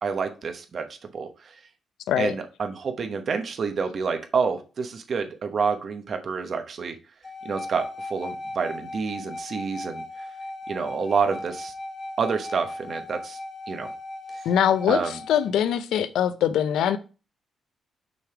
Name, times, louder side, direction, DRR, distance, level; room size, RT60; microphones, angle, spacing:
voice 1, 0.0-0.9 1.1-1.3 2.2-6.9 7.4-7.8 8.1-10.0 10.7-11.7 12.2-13.4 13.7-13.9 14.9-15.1, right 5 dB, 50° right, 0.9 m, -28 dB
sound 1, 7.2-15.5, left 2 dB, 30° left, 1.2 m, -37 dB
voice 2, 14.4-17.0, left 9 dB, 90° left, 0.5 m, -23 dB
6.1 x 3.5 x 4.7 m
cardioid pair, 105°, 0 cm